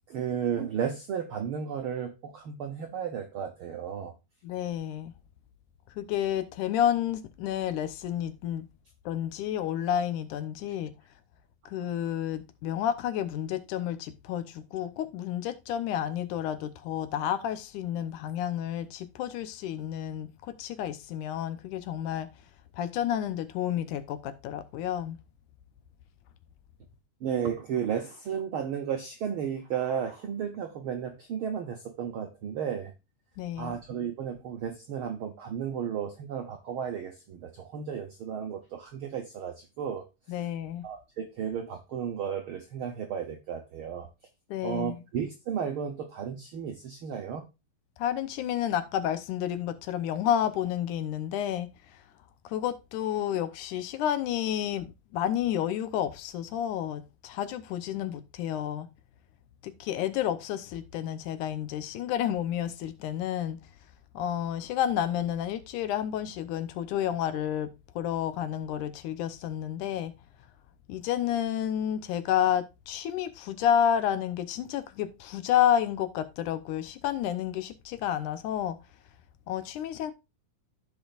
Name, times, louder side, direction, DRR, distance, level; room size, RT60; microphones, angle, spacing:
voice 1, 0.1-4.1 27.2-32.9 33.6-40.0 40.8-44.1 44.6-47.4, right 8 dB, 75° right, 1.2 m, -33 dB
voice 2, 4.4-5.1 6.0-8.7 9.1-10.9 11.7-22.3 22.7-25.2 33.4-33.8 40.3-40.9 44.5-45.0 48.0-52.0 52.4-58.9 59.6-63.6 64.1-70.1 70.9-78.8 79.5-80.1, left 10 dB, 75° left, 2.2 m, -30 dB
14.0 x 5.0 x 2.5 m
omnidirectional pair, 3.7 m